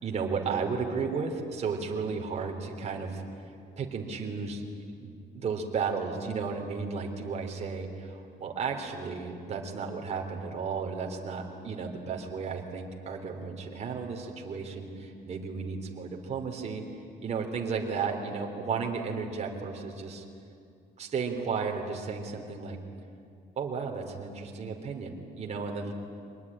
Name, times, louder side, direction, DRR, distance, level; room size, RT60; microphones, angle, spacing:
voice 1, 0.0-3.2 3.8-4.6 5.0-16.8 17.2-20.2 21.0-22.8 23.6-25.9, right 5 dB, 40° right, 2 dB, 3.3 m, -34 dB
24.5 x 20.0 x 9.9 m, 2.4 s
cardioid pair, 110°, 17 cm